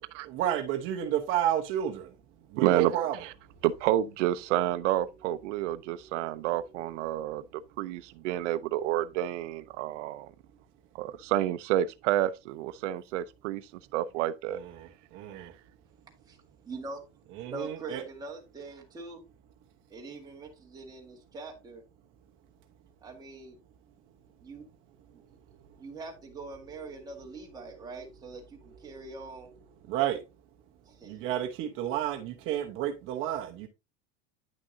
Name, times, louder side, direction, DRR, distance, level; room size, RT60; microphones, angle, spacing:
voice 1, 0.2-2.1 2.5-3.3 14.5-15.5 17.3-18.0 29.9-30.2 31.1-33.7, right 11 dB, 35° right, 1.0 m, -31 dB
voice 2, 2.6-2.9 3.2-3.3 3.6-10.3 11.0-13.6 13.9-14.6 15.3-15.5, right 13 dB, 90° right, 0.7 m, -29 dB
voice 3, 16.7-17.1 17.4-19.2 19.9-21.8 23.0-23.6 24.4-24.7 25.3-25.4 25.8-29.5 30.8-31.2, right 3 dB, 10° right, 1.8 m, -43 dB
9.9 x 6.2 x 2.7 m
supercardioid pair, 175°, 35 cm